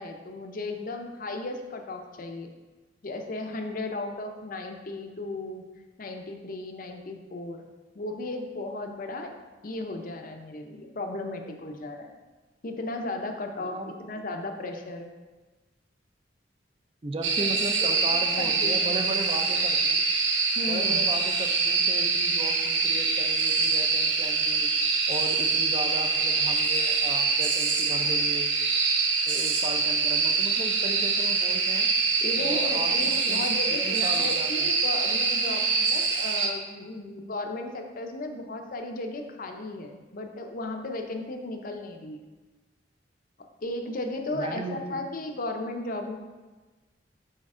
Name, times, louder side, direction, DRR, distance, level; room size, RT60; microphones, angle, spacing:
voice 1, 0.0-2.5 3.0-5.6 6.0-7.7 7.9-9.3 9.6-12.1 12.6-15.1 17.6-17.7 18.0-19.0 20.6-21.0 32.2-42.2 43.4-46.2, left 2 dB, 50° left, 4 dB, 0.6 m, -35 dB
voice 2, 13.6-14.0 17.0-20.1 20.7-24.7 25.1-28.6 29.3-31.9 32.4-34.7 44.3-45.0, right 2 dB, 30° right, 5 dB, 0.5 m, -36 dB
sound 1, 17.2-36.5, right 4 dB, 80° right, 0.8 m, -25 dB
6.4 x 5.2 x 3.6 m, 1.2 s
head